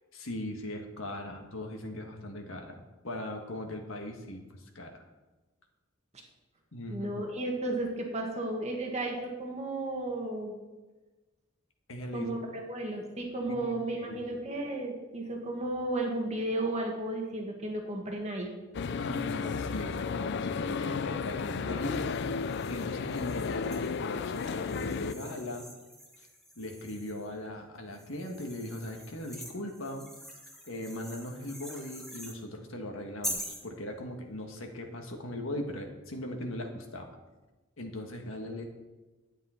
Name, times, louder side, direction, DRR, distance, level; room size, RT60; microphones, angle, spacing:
voice 1, 0.1-5.0 6.7-7.2 11.9-12.4 13.6-13.7 14.0-14.3 19.0-25.7 26.2-26.3 26.6-30.1 30.7-37.1 37.8-38.7, left 1 dB, 80° left, 3 dB, 1.6 m, -39 dB
voice 2, 6.9-10.6 12.1-18.5, right 1 dB, 35° right, 1 dB, 1.7 m, -34 dB
sound 1, 18.7-25.1, left 5 dB, 55° left, 0.4 m, -33 dB
sound 2, 21.7-27.3 27.9-32.4 33.2-33.7, equal, ahead, 1.4 m, -45 dB
10.5 x 8.9 x 4.4 m, 1.1 s
head